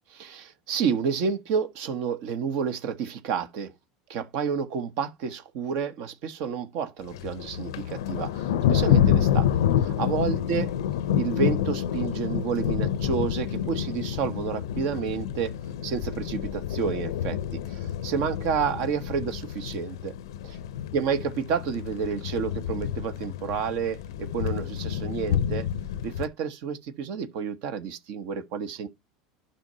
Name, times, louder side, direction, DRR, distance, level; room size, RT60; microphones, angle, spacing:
voice 1, 0.1-3.7 4.1-9.5 9.8-10.7 11.1-15.5 15.8-20.1 20.4-20.6 20.9-25.7 26.0-28.9, right 6 dB, 65° right, 1.1 m, -30 dB
Thunder, 7.1-26.3, left 10 dB, 85° left, 0.6 m, -28 dB
11.5 x 5.7 x 2.7 m
supercardioid pair, 100°, 2 cm